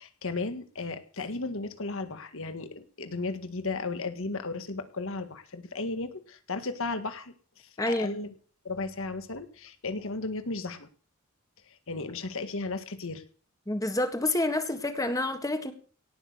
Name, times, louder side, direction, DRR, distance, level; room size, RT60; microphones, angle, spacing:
voice 1, 0.0-7.3 7.9-8.3 8.6-10.9 11.7-13.2, left 3 dB, 65° left, 1.8 m, -35 dB
voice 2, 7.8-8.2 13.7-15.7, left 2 dB, 15° left, 1.6 m, -28 dB
17.5 x 6.4 x 8.2 m
head